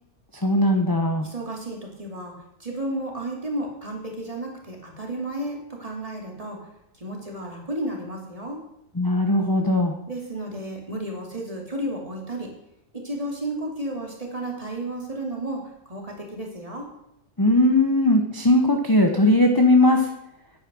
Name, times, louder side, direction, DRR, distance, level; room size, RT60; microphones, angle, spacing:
voice 1, 0.4-1.3 8.9-9.9 17.4-20.1, left 1 dB, 20° left, 3 dB, 0.9 m, -19 dB
voice 2, 1.2-6.7 6.9-8.6 10.1-12.5 12.9-16.9, right 1 dB, 25° right, 0 dB, 2.6 m, -32 dB
9.2 x 9.0 x 6.1 m, 0.80 s
omnidirectional pair, 1.4 m